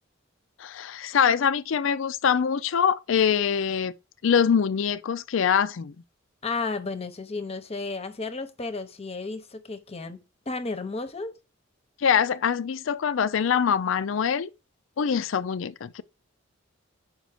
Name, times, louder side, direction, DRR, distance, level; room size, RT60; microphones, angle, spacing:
voice 1, 0.6-3.9 4.2-6.0 12.0-14.5 15.0-16.0, left 7 dB, 65° left, 0.4 m, -24 dB
voice 2, 6.4-10.2 10.5-11.3, left 3 dB, 30° left, 0.8 m, -33 dB
6.2 x 5.2 x 4.9 m
head